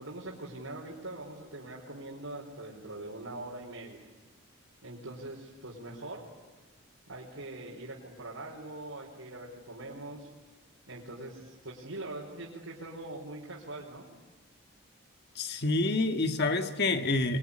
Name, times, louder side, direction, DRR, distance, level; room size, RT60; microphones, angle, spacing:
voice 1, 0.0-4.1 4.8-6.2 7.1-10.3 10.9-14.1, right 2 dB, 75° right, -4 dB, 4.4 m, -42 dB
voice 2, 15.3-17.4, left 2 dB, 50° left, 7 dB, 1.6 m, -28 dB
26.0 x 22.0 x 9.9 m, 1.3 s
head